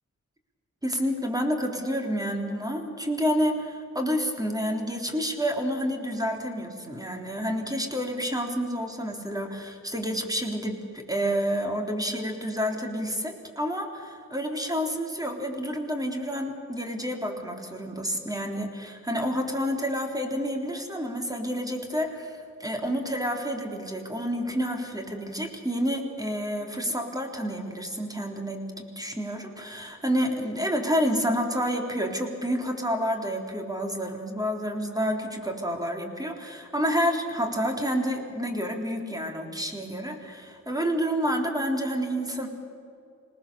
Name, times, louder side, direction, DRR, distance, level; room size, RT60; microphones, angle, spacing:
voice 1, 0.8-42.5, equal, 10° right, 3 dB, 3.6 m, -29 dB
26.5 x 19.0 x 7.0 m, 2.5 s
wide cardioid pair, 85°, 30 cm